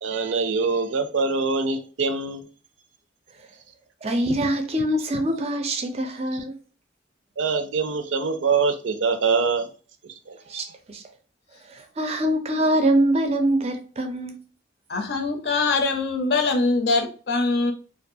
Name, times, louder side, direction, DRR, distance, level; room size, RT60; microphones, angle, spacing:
voice 1, 0.0-2.4 7.4-9.7 10.3-10.6, right 4 dB, 90° right, 0.5 m, -24 dB
voice 2, 4.0-6.6 10.5-11.0 11.7-14.3, right 1 dB, 35° right, 0.4 m, -24 dB
voice 3, 14.9-17.7, left 3 dB, 60° left, 0.5 m, -23 dB
2.5 x 2.2 x 2.6 m
head